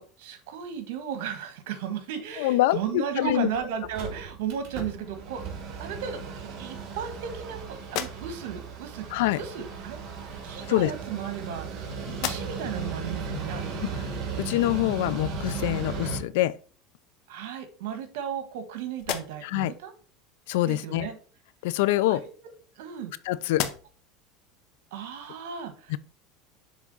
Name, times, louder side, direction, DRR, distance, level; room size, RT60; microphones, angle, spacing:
voice 1, 0.0-5.4 5.8-9.0 9.4-10.0 10.4-11.7 12.1-14.0 17.3-19.9 20.6-21.1 22.1-22.3 22.8-23.1 24.9-25.9, right 8 dB, 80° right, 1.3 m, -35 dB
voice 2, 2.4-3.5 9.1-9.4 10.7-10.9 13.8-13.9 14.4-16.6 19.4-19.7 20.5-21.1 21.6-22.2 23.3-23.6 25.9-26.0, left 16 dB, 80° left, 0.4 m, -25 dB
Mechanical fan, 3.2-3.3 3.5-3.6 3.8-16.2, right 4 dB, 55° right, 2.0 m, -36 dB
sound 1, 7.8-8.7 9.8-10.0 10.9-11.8 12.1-12.8 13.3-13.4 16.1-16.2 16.6-17.3 17.9-18.6 18.9-19.7 21.7-23.1 23.5-24.2, left 11 dB, 60° left, 0.7 m, -37 dB
7.3 x 3.5 x 4.0 m
supercardioid pair, 115°, 0 cm